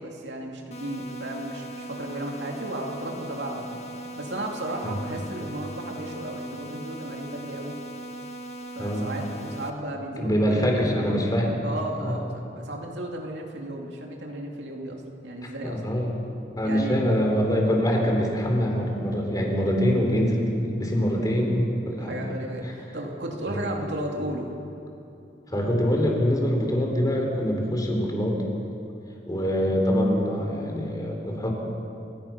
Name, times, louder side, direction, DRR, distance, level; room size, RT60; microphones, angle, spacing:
voice 1, 0.0-3.8 4.2-7.8 8.7-11.2 11.6-15.8 16.6-17.1 22.0-24.5, right 1 dB, 75° right, 1 dB, 2.6 m, -34 dB
sound 1, 0.7-9.7, right 1 dB, 40° left, 1.5 m, -39 dB
voice 2, 10.2-11.5 12.0-12.2 15.4-16.1 16.6-22.2 23.5-23.6 25.5-28.4 29.3-31.5, equal, 20° left, 0 dB, 3.8 m, -24 dB
29.5 x 16.0 x 5.9 m, 2.7 s
head